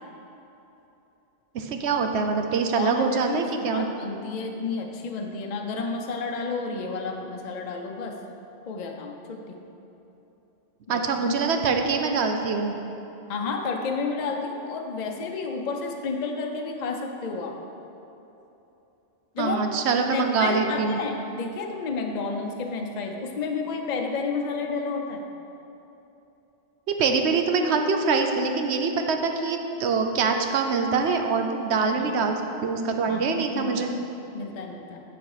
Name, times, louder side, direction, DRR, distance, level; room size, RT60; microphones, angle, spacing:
voice 1, 1.5-3.9 10.9-12.8 19.4-21.0 26.9-33.9, right 4 dB, 70° right, 5 dB, 1.0 m, -24 dB
voice 2, 2.8-8.2 8.7-9.6 10.9-11.5 13.3-17.6 19.3-19.6 20.1-25.2 31.9-32.2 33.0-33.9 34.3-35.0, left 4 dB, 45° left, 2 dB, 0.7 m, -31 dB
10.0 x 5.3 x 4.8 m, 3.0 s
omnidirectional pair, 1.2 m